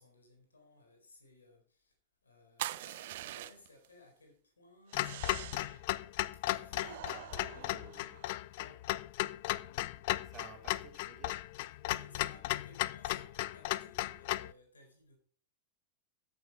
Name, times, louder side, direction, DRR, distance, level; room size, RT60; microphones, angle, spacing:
voice 1, 0.0-1.9 2.2-5.6 6.3-7.6 8.6-8.8 11.8-15.2, left 2 dB, 75° left, 4.2 m, -59 dB
sound 1, 2.6-3.9 4.9-5.8 6.7-8.4, right 15 dB, 55° right, 0.5 m, -44 dB
Clock, 4.9-14.5, left 18 dB, 50° left, 0.4 m, -36 dB
voice 2, 7.1-8.1 10.2-11.4, right 6 dB, 30° right, 3.1 m, -53 dB
14.5 x 8.3 x 4.3 m
figure-of-eight pair, 90°, 0 cm